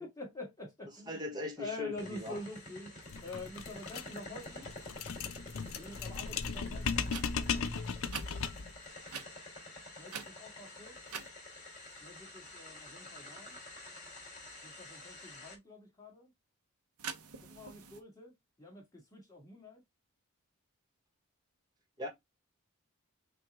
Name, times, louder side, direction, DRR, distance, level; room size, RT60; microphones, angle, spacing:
voice 1, 0.0-1.2 1.6-2.9 3.2-4.7 5.8-7.0 10.0-11.0 12.0-13.6 14.6-16.3 17.5-18.3 18.6-19.8, left 2 dB, 15° left, 1.8 m, -46 dB
voice 2, 0.9-2.4 22.0-22.1, left 1 dB, 20° right, 1.2 m, -40 dB
sound 1, 2.0-15.5, left 2 dB, 35° left, 2.7 m, -49 dB
sound 2, 3.1-8.8, left 5 dB, 65° left, 0.5 m, -37 dB
sound 3, 7.0-7.2 8.1-8.3 9.1-9.3 10.1-10.6 11.1-11.3 17.0-18.0, right 6 dB, 85° right, 0.7 m, -43 dB
5.9 x 2.3 x 3.4 m
head